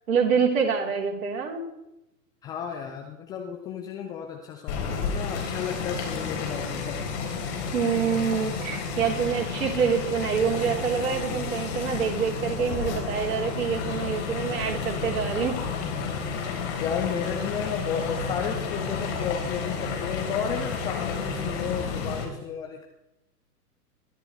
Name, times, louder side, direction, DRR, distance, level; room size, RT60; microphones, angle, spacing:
voice 1, 0.1-1.6 7.7-15.6, right 6 dB, 55° right, -1 dB, 4.1 m, -26 dB
voice 2, 2.4-7.0 16.8-22.8, left 7 dB, 10° left, 3 dB, 0.4 m, -33 dB
sound 1, 4.7-22.2, left 5 dB, 45° left, 4.3 m, -31 dB
22.0 x 13.0 x 3.4 m, 0.88 s
figure-of-eight pair, 110°, 48 cm